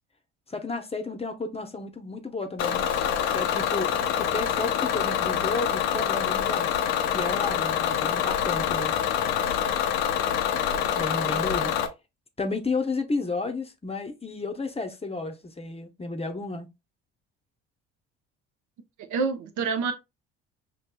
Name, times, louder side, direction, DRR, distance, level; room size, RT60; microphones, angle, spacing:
voice 1, 0.5-2.9 3.3-6.7 7.1-8.9 9.4-9.6 11.0-11.7 12.4-16.7, left 3 dB, 20° left, 0.7 m, -32 dB
Bus / Engine, 2.6-11.9, left 9 dB, 85° left, 0.6 m, -26 dB
voice 2, 19.0-19.9, right 5 dB, 65° right, 0.7 m, -27 dB
5.3 x 2.7 x 2.2 m
hypercardioid pair, 65°, 31 cm